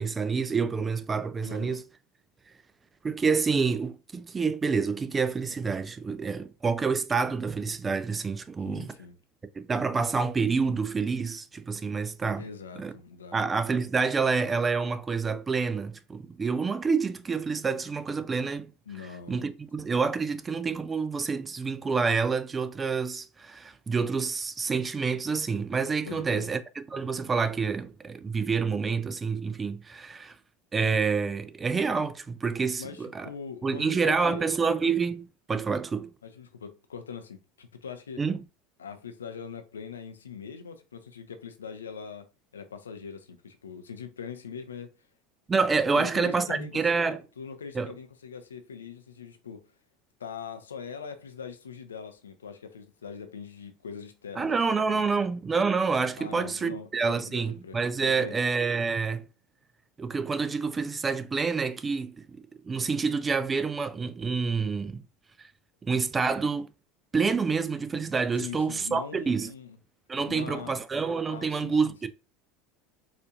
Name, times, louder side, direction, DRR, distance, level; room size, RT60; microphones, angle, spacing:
voice 1, 0.0-1.8 3.0-8.9 9.6-12.4 12.8-12.9 13.3-18.7 19.3-30.4 30.7-33.3 33.6-36.1 38.2-38.4 45.5-47.2 47.7-47.9 54.4-59.3 60.0-62.3 62.6-65.0 65.4-65.5 65.8-66.7 67.1-69.5 70.1-72.1, right 5 dB, 20° right, 0.3 m, -28 dB
voice 2, 1.4-1.8 8.6-9.2 12.4-13.4 18.9-19.5 26.1-26.5 32.8-34.5 36.2-38.2 38.8-42.3 42.5-45.0 46.0-49.7 50.2-55.3 56.2-58.4 68.4-69.8 70.3-70.8 71.3-72.1, left 6 dB, 75° left, 0.4 m, -42 dB
4.3 x 2.5 x 2.4 m
figure-of-eight pair, 75°, 0 cm